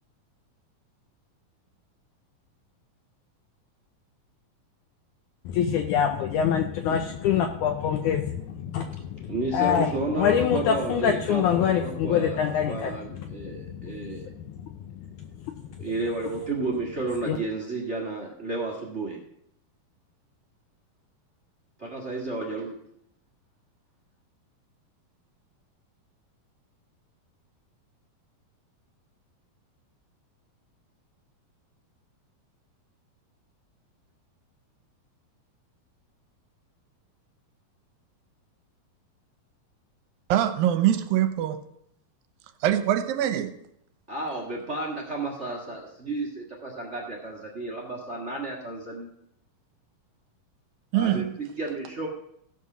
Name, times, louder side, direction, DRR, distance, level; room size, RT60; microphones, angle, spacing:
voice 1, 5.5-9.9 10.2-12.9 13.4-13.9 17.3-17.4, left 8 dB, 80° left, 1.8 m, -25 dB
voice 2, 9.2-14.2 15.8-19.2 21.8-22.7 44.1-49.1 50.9-52.1, right 2 dB, 40° right, 0.9 m, -32 dB
voice 3, 40.3-41.6 42.6-43.5 50.9-51.3, right 11 dB, 80° right, 2.4 m, -23 dB
15.5 x 5.6 x 6.1 m
omnidirectional pair, 4.2 m